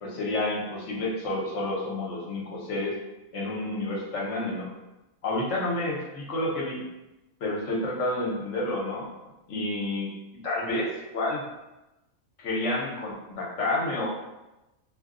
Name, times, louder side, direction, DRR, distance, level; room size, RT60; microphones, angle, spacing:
voice 1, 0.0-2.9 3.3-4.7 5.2-6.8 7.4-9.1 9.5-11.5 12.4-14.1, left 2 dB, 65° left, -3 dB, 1.1 m, -30 dB
2.5 x 2.2 x 3.6 m, 0.98 s
omnidirectional pair, 1.4 m